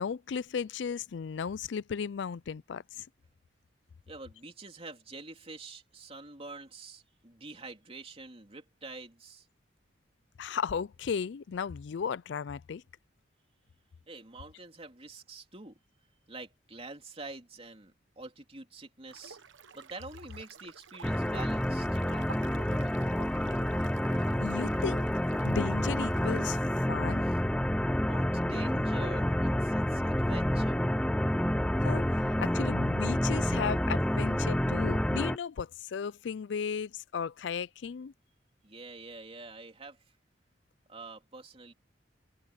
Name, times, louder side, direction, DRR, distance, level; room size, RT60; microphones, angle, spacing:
voice 1, 0.0-3.1 10.4-12.8 24.4-25.1 25.4-26.6 26.9-27.2 31.8-38.1, left 6 dB, 70° left, 0.4 m, -35 dB
voice 2, 4.1-9.5 14.1-15.8 16.3-19.4 19.7-22.9 27.2-27.4 28.0-30.8 38.6-40.1 40.9-41.7, right 3 dB, 30° right, 3.1 m, -46 dB
sound 1, 19.1-26.6, right 5 dB, 80° right, 1.0 m, -50 dB
sound 2, 21.0-35.4, left 1 dB, 5° left, 0.5 m, -29 dB
head